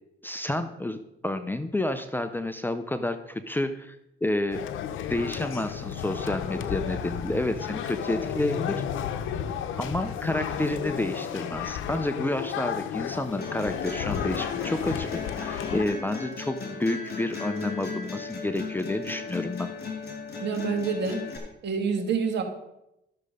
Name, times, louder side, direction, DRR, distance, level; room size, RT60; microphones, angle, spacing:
voice 1, 0.2-1.0 1.2-4.6 5.1-8.8 9.8-19.7, left 1 dB, 10° left, 10 dB, 0.7 m, -30 dB
sound 1, 4.5-15.9, left 9 dB, 80° left, 0.8 m, -32 dB
sound 2, 13.4-21.4, left 5 dB, 50° left, 3.4 m, -36 dB
voice 2, 20.4-21.3 21.6-22.4, right 5 dB, 60° right, 4 dB, 2.1 m, -27 dB
12.5 x 6.6 x 5.0 m, 0.87 s
cardioid pair, 90°, 20 cm